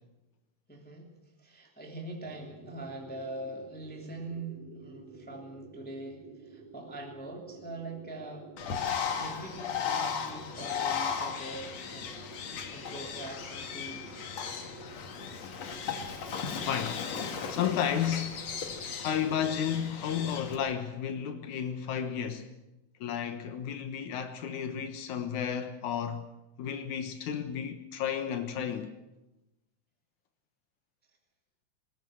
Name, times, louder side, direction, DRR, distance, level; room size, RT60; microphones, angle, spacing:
voice 1, 0.7-1.1 1.4-8.6 9.2-12.1 12.7-14.1, right 2 dB, 5° left, 2.6 m, -43 dB
sound 1, 2.2-19.7, right 3 dB, 65° right, 6.8 m, -52 dB
Bird, 8.6-20.6, left 7 dB, 60° left, 2.9 m, -36 dB
voice 2, 16.6-17.1 17.5-18.5 19.0-22.5 23.0-26.3 26.6-28.9, left 8 dB, 80° left, 2.7 m, -32 dB
20.0 x 19.5 x 7.8 m
omnidirectional pair, 3.4 m